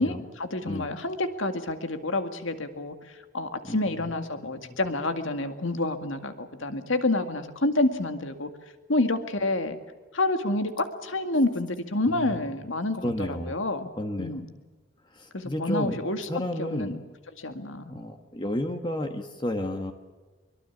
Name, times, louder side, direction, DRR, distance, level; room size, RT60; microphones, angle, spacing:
voice 1, 0.0-2.9 3.3-8.5 8.9-9.8 10.1-13.9 14.2-14.4 15.3-16.3 16.6-17.0 17.4-17.8, left 2 dB, 70° left, 8 dB, 2.1 m, -28 dB
voice 2, 3.6-4.0 4.4-4.8 12.1-12.4 13.0-13.6 14.0-14.4 15.1-17.0 17.9-19.9, left 1 dB, 20° left, 6 dB, 1.3 m, -32 dB
23.5 x 22.5 x 7.3 m, 1.3 s
head